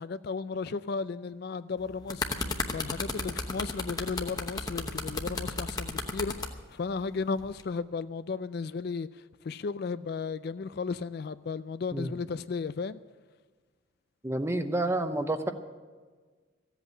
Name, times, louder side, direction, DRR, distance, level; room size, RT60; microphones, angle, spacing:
voice 1, 0.0-6.3 6.7-9.1 9.4-13.0, left 4 dB, 50° left, 0.3 m, -34 dB
sound 1, 1.8-6.5 7.4-7.6, left 3 dB, 20° left, 0.9 m, -33 dB
voice 2, 14.2-15.5, right 1 dB, 15° right, 0.7 m, -29 dB
15.0 x 8.1 x 8.6 m
head